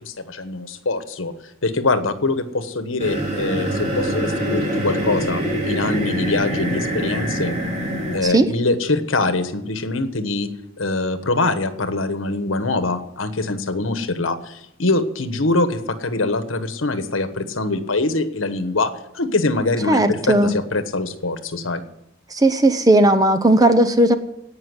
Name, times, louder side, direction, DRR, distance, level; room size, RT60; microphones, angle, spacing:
voice 1, 0.0-1.3 1.6-7.6 8.1-10.5 10.8-21.8, left 2 dB, 75° left, 10 dB, 1.3 m, -23 dB
sound 1, 3.0-8.2, equal, 35° right, 2.9 m, -24 dB
voice 2, 19.9-20.5 22.3-24.1, right 1 dB, 20° right, 10 dB, 0.8 m, -16 dB
17.5 x 5.8 x 9.8 m, 0.84 s
head